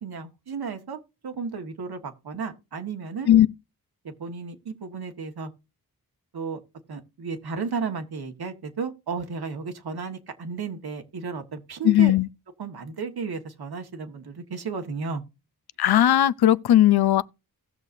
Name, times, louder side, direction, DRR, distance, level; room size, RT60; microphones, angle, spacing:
voice 1, 0.0-3.3 4.0-5.5 6.3-6.6 6.9-12.1 12.6-15.2, right 5 dB, 85° right, 1.7 m, -33 dB
voice 2, 11.8-12.3 15.8-17.2, left 12 dB, 85° left, 0.6 m, -17 dB
18.0 x 6.7 x 2.7 m
wide cardioid pair, 75°, 37 cm